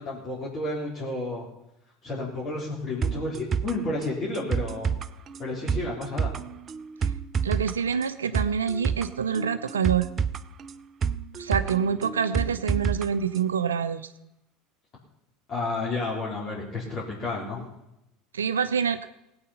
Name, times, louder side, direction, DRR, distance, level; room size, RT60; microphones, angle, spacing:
voice 1, 0.0-1.5 2.0-4.9 5.4-6.3 15.5-17.6, left 2 dB, 40° left, -5 dB, 3.9 m, -31 dB
sound 1, 3.0-13.1 13.4-13.5, right 6 dB, 35° right, 0.7 m, -29 dB
voice 2, 7.4-10.1 11.4-14.1 18.3-19.1, right 7 dB, 85° right, 11 dB, 0.6 m, -26 dB
18.0 x 8.7 x 5.8 m, 0.86 s
hypercardioid pair, 80°, 0 cm